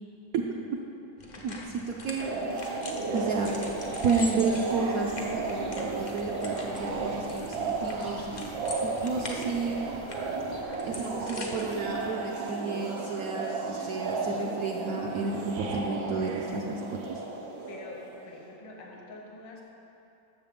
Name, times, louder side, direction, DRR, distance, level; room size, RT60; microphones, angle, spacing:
sound 1, 1.2-12.0, left 2 dB, 50° left, 0.5 m, -43 dB
voice 1, 1.9-2.4 3.1-3.5 4.0-8.3 8.8-9.8 10.9-17.0, right 4 dB, 70° right, 0 dB, 0.9 m, -31 dB
sound 2, 2.2-18.4, right 3 dB, 90° right, 1.7 m, -34 dB
sound 3, 3.3-10.6, right 1 dB, 25° right, 0.4 m, -49 dB
voice 2, 17.7-19.6, left 2 dB, 70° left, -1 dB, 1.7 m, -47 dB
12.5 x 6.8 x 3.6 m, 2.9 s
omnidirectional pair, 2.1 m